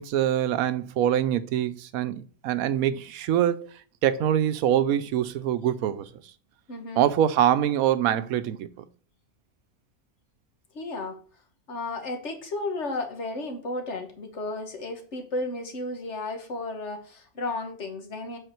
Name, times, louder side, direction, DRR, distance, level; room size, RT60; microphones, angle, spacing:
voice 1, 0.0-3.7 4.0-6.1 7.0-8.7, right 10 dB, 85° right, 1.1 m, -24 dB
voice 2, 6.7-7.0 10.7-11.2 11.7-18.4, left 2 dB, 55° left, 1.6 m, -33 dB
8.1 x 4.2 x 4.4 m
omnidirectional pair, 1.4 m